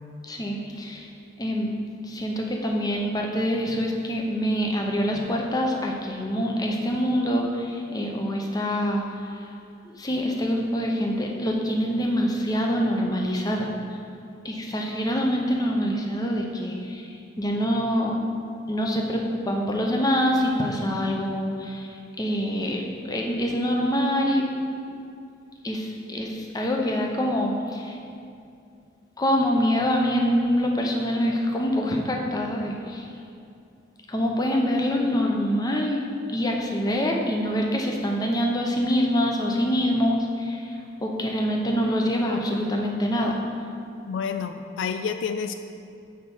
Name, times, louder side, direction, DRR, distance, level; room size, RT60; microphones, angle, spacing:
voice 1, 0.2-1.1 1.4-1.7 2.0-9.5 9.8-13.7 14.4-18.2 18.7-24.4 24.9-25.0 25.6-28.0 29.2-33.1 34.1-36.0 36.3-43.4, equal, 20° left, 0 dB, 0.6 m, -25 dB
voice 2, 44.0-45.5, left 6 dB, 75° left, 8 dB, 0.3 m, -29 dB
6.3 x 4.5 x 5.4 m, 2.5 s
head